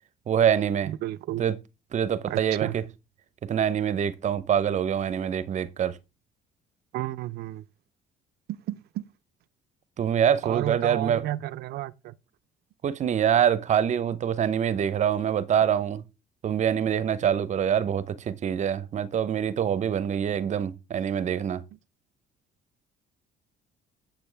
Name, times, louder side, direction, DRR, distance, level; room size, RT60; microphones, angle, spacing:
voice 1, 0.3-0.9 1.4-1.6 1.9-2.8 3.4-6.0 10.0-11.2 12.8-16.0 16.4-21.6, right 8 dB, 45° right, 0.8 m, -25 dB
voice 2, 0.8-1.4 2.3-2.8 6.9-7.6 8.5-9.1 10.4-12.1 21.7-21.8, right 15 dB, 70° right, 0.5 m, -32 dB
8.7 x 7.7 x 3.4 m
cardioid pair, 110°, 17 cm